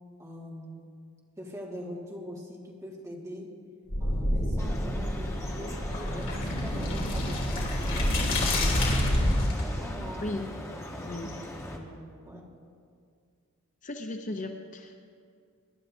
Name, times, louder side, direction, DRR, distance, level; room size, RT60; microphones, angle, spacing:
voice 1, 0.2-0.8 1.4-3.5 4.0-10.4 10.9-12.5, equal, 15° right, -3 dB, 1.8 m, -42 dB
sound 1, 3.9-9.6, left 1 dB, 60° left, 2.9 m, -28 dB
sound 2, 4.6-11.8, left 1 dB, 15° left, 1.1 m, -39 dB
voice 2, 13.8-15.1, left 2 dB, 35° left, 4 dB, 0.6 m, -36 dB
24.0 x 11.5 x 2.7 m, 2.3 s
head